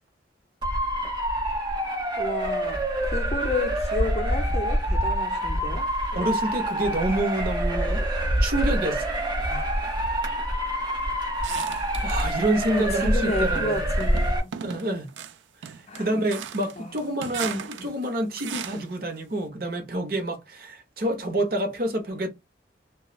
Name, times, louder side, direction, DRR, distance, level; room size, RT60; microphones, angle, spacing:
Motor vehicle (road) / Siren, 0.6-14.4, right 1 dB, 25° right, 1.1 m, -26 dB
voice 1, 1.8-5.9 7.7-8.1 9.5-10.0 12.7-14.5 15.9-16.2 16.8-16.9 17.5-17.9, left 2 dB, 35° left, 0.5 m, -32 dB
voice 2, 6.1-8.1 8.4-9.1 12.0-13.9 14.6-15.1 15.6-22.3, right 1 dB, 55° right, 0.8 m, -28 dB
sound 1, 11.4-12.3 12.8-13.3 14.0-19.0, right 8 dB, 85° right, 0.4 m, -38 dB
3.0 x 2.3 x 2.3 m
head